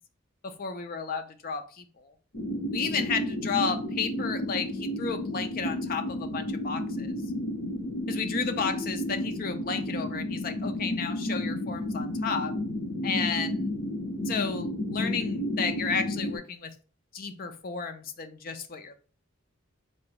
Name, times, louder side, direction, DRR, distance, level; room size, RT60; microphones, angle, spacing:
voice 1, 0.4-2.1 2.7-7.1 8.1-12.5 13.0-13.7 14.3-16.7 17.1-18.9, left 5 dB, 40° left, 7 dB, 0.4 m, -32 dB
sound 1, 2.3-16.4, left 1 dB, 80° left, 1.2 m, -32 dB
3.8 x 2.3 x 3.8 m, 0.39 s
head